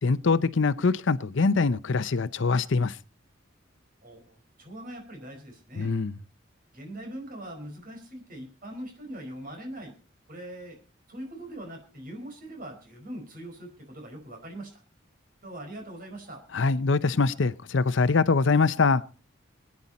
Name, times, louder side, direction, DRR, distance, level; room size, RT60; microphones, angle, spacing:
voice 1, 0.0-3.0 5.8-6.1 16.5-19.0, left 4 dB, 70° left, 0.6 m, -23 dB
voice 2, 4.0-5.9 6.7-9.9 10.3-10.8 11.1-14.8 15.4-16.4, right 1 dB, 45° right, 4.8 m, -41 dB
22.0 x 9.8 x 4.2 m
head